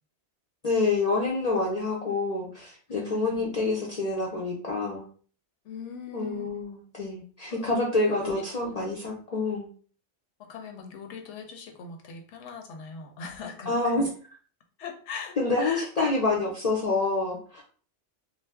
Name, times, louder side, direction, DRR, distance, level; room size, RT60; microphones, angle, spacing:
voice 1, 0.6-5.0 6.1-9.7 13.7-14.1 15.4-17.6, left 3 dB, 50° left, -3 dB, 0.5 m, -27 dB
voice 2, 2.9-3.6 5.6-6.5 7.5-7.7 8.2-8.8 10.4-14.1 14.8-15.9, left 5 dB, 85° left, 3 dB, 1.0 m, -41 dB
2.5 x 2.0 x 3.3 m, 0.42 s
omnidirectional pair, 1.2 m